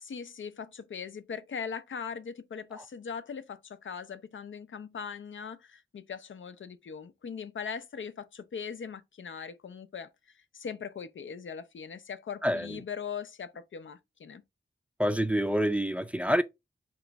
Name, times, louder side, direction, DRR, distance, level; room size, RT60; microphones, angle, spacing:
voice 1, 0.0-10.1 10.5-14.4, left 6 dB, 85° left, 0.5 m, -40 dB
voice 2, 12.4-12.8 15.0-16.4, equal, 5° right, 0.3 m, -27 dB
4.0 x 3.0 x 3.4 m
wide cardioid pair, 85°, 20 cm